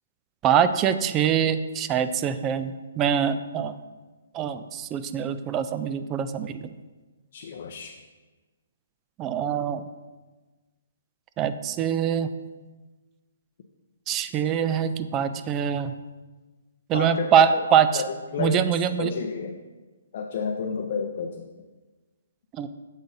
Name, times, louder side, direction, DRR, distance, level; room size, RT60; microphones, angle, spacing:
voice 1, 0.4-3.7 4.3-6.6 9.2-9.8 11.4-12.3 14.1-15.9 16.9-18.0 18.4-19.1 22.5-22.7, right 8 dB, 20° right, 11 dB, 0.3 m, -24 dB
voice 2, 7.3-7.9 16.9-17.6 17.9-18.0 18.3-19.6 20.1-21.4, left 6 dB, 50° left, 4 dB, 0.5 m, -31 dB
7.5 x 7.2 x 2.7 m, 1.3 s
hypercardioid pair, 150°, 0 cm